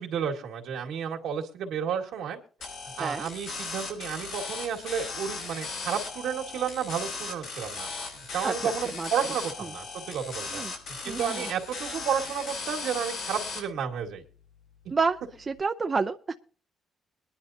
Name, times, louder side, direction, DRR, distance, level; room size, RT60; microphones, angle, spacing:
voice 1, 0.0-2.4 3.0-7.9 8.3-10.6 11.0-14.2, right 7 dB, 85° right, 1 dB, 2.0 m, -32 dB
sound 1, 2.6-13.6, left 4 dB, 90° left, 5.4 m, -37 dB
voice 2, 8.4-9.1 10.5-10.7 11.0-11.4 14.9-15.2 15.5-16.4, right 4 dB, 30° right, 7 dB, 0.5 m, -29 dB
21.5 x 10.5 x 2.8 m, 0.40 s
cardioid pair, 90°, 0 cm